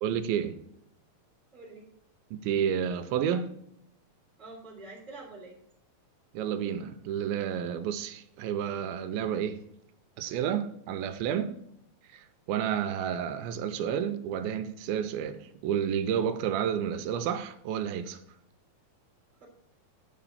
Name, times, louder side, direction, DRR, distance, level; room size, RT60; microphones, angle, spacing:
voice 1, 0.0-0.6 2.3-3.5 6.3-9.6 10.2-11.5 12.1-18.2, right 8 dB, 90° right, 2.5 m, -30 dB
voice 2, 1.5-1.9 4.4-5.6 19.4-19.5, right 3 dB, 15° right, 2.3 m, -46 dB
9.7 x 5.1 x 5.6 m
omnidirectional pair, 4.2 m